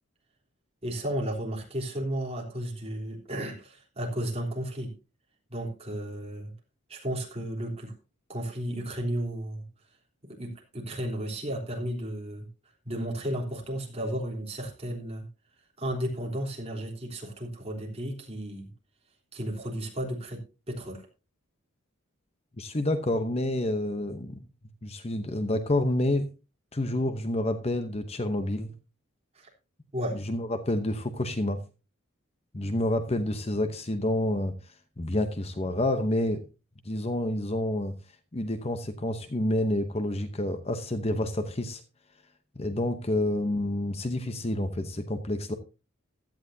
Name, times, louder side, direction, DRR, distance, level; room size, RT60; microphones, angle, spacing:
voice 1, 0.8-4.9 5.5-6.5 6.9-7.9 8.3-9.6 10.2-12.5 12.8-15.2 15.8-18.7 19.3-21.0 29.3-29.5 29.9-30.2, right 1 dB, 30° right, -1 dB, 3.5 m, -33 dB
voice 2, 22.6-24.4 24.8-26.3 26.7-28.7 30.1-31.6 32.5-36.4 36.8-37.9 38.3-41.8 42.6-45.5, left 1 dB, 30° left, 9 dB, 0.8 m, -28 dB
16.0 x 12.0 x 2.8 m, 0.31 s
head